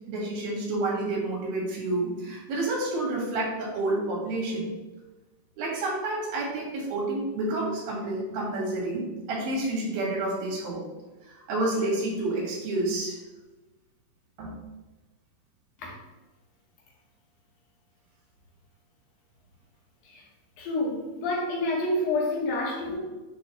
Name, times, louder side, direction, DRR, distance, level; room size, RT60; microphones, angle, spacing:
voice 1, 0.1-4.7 5.6-10.8 11.2-13.2 14.4-14.6 22.9-23.0, right 2 dB, 85° right, -3 dB, 3.6 m, -29 dB
voice 2, 20.6-23.0, left 2 dB, 80° left, -1 dB, 2.9 m, -28 dB
8.5 x 3.7 x 3.0 m, 1.2 s
omnidirectional pair, 4.1 m